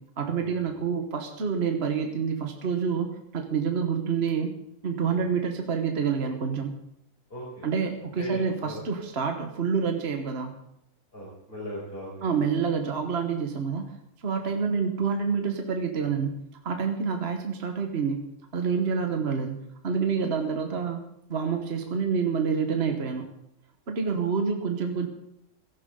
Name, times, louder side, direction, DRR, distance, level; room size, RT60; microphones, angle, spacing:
voice 1, 0.2-3.1 3.3-4.5 4.8-6.8 7.6-10.5 12.2-13.9 14.2-16.3 16.6-18.2 18.5-19.6 19.8-21.0 21.3-23.3 23.9-25.1, right 6 dB, 45° right, 4 dB, 1.5 m, -27 dB
voice 2, 7.3-7.7 8.2-8.8 11.1-12.3, equal, 35° left, -7 dB, 5.2 m, -38 dB
16.5 x 14.5 x 3.8 m, 0.80 s
omnidirectional pair, 1.7 m